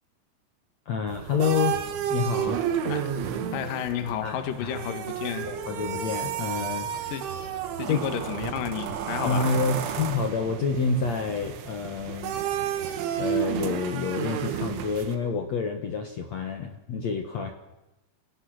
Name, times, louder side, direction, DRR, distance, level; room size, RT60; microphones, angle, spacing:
voice 1, 0.8-1.8 2.1-2.8 4.2-4.8 5.5-7.2 7.9-8.0 9.2-12.4 13.2-17.5, left 5 dB, 75° left, 5 dB, 1.6 m, -28 dB
sound 1, 1.1-15.2, right 9 dB, 85° right, 4.0 m, -31 dB
voice 2, 3.5-5.5 7.1-7.2 7.8-9.6, left 9 dB, 60° left, 8 dB, 2.9 m, -31 dB
29.0 x 18.0 x 6.5 m, 0.98 s
omnidirectional pair, 5.4 m